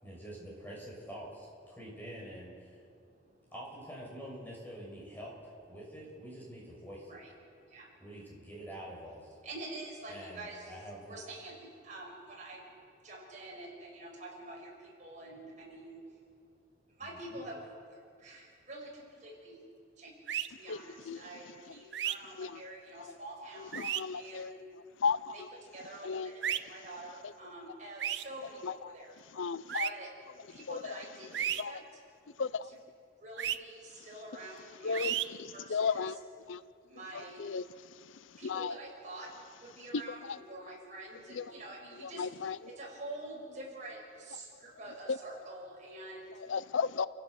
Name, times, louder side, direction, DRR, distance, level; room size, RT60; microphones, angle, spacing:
voice 1, 0.0-2.8 3.5-7.2 8.0-9.4 10.1-11.2 17.0-17.4, equal, 10° left, 6.2 m, -46 dB
voice 2, 2.7-3.5 5.1-5.2 7.1-8.1 9.4-10.8 11.1-23.7 24.1-24.7 25.3-29.2 29.8-30.1 30.5-32.1 32.6-32.8 33.2-36.2 36.9-37.5 38.4-39.3 39.6-46.4, right 2 dB, 40° right, 6.0 m, -47 dB
sound 1, 20.3-20.5 21.9-22.2 23.7-24.0 26.4-26.6 28.0-28.2 29.7-29.9 31.3-31.6 33.4-33.6 34.9-35.3, right 10 dB, 60° right, 0.6 m, -32 dB
voice 3, 23.8-24.5 25.0-25.2 26.0-26.3 29.4-29.9 31.6-31.7 32.4-32.6 34.8-35.1 35.7-36.1 36.5-36.6 37.4-37.6 38.5-38.7 41.4-41.5 42.2-42.6 46.5-47.1, left 5 dB, 85° left, 0.5 m, -32 dB
29.5 x 15.5 x 6.4 m
head